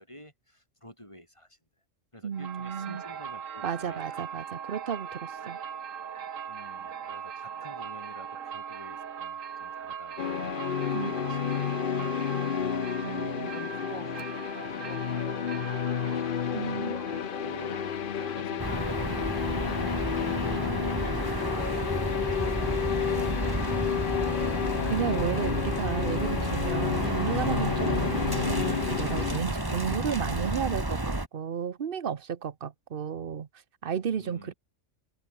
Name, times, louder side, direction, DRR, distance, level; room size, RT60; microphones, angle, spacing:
voice 1, 0.0-1.6 2.1-4.3 6.5-10.4 10.9-12.8 13.5-14.3 14.7-16.4 17.1-17.8 18.3-19.2 19.5-20.0 34.2-34.5, equal, 20° left, 7.6 m, -48 dB
voice 2, 2.2-3.0 3.6-5.6 10.9-11.1 13.0-13.5 16.5-17.0 24.9-33.5 33.8-34.5, right 7 dB, 45° right, 1.1 m, -33 dB
sound 1, 2.3-18.8, right 8 dB, 80° right, 1.5 m, -40 dB
sound 2, 10.2-29.4, left 9 dB, 50° left, 0.8 m, -31 dB
ambient de ciutat nocturn rumble, 18.6-31.3, right 2 dB, 15° right, 2.0 m, -31 dB
omnidirectional pair, 1.3 m